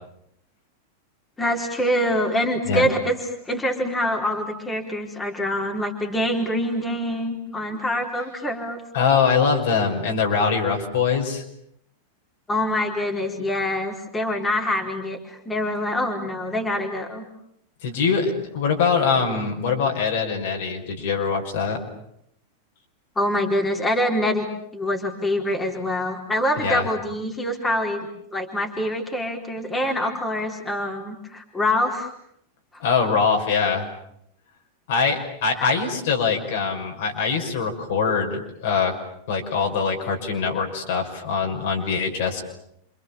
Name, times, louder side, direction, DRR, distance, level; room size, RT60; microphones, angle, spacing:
voice 1, 1.4-3.2 3.5-8.8 12.5-17.2 23.2-24.5 24.7-32.1 35.6-35.7, left 1 dB, 10° left, 2 dB, 4.4 m, -25 dB
voice 2, 8.9-11.4 17.8-21.8 26.6-26.9 32.8-33.9 34.9-38.9 39.3-42.4, left 5 dB, 55° left, 2 dB, 6.1 m, -23 dB
30.0 x 27.0 x 7.3 m, 0.73 s
figure-of-eight pair, 90°, 0 cm